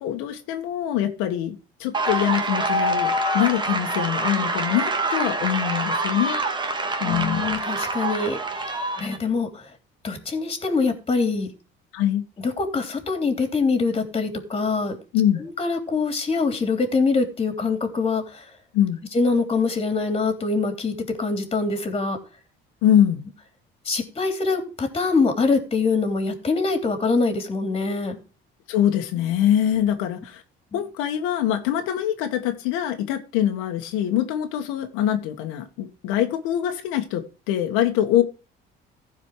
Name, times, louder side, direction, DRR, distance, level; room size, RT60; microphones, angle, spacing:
voice 1, 0.0-6.4 7.0-7.5 11.9-12.2 15.1-15.4 18.7-19.0 22.8-23.3 28.7-30.4 30.7-38.2, left 11 dB, 90° left, 1.7 m, -23 dB
sound 1, 1.9-9.2, right 2 dB, 20° right, 1.9 m, -25 dB
voice 2, 7.0-8.7 9.0-9.7 10.0-11.5 12.4-15.0 15.4-18.4 19.1-22.2 23.8-28.2 30.7-30.8, left 4 dB, 25° left, 3.3 m, -24 dB
15.0 x 5.1 x 4.8 m
cardioid pair, 105°, 21 cm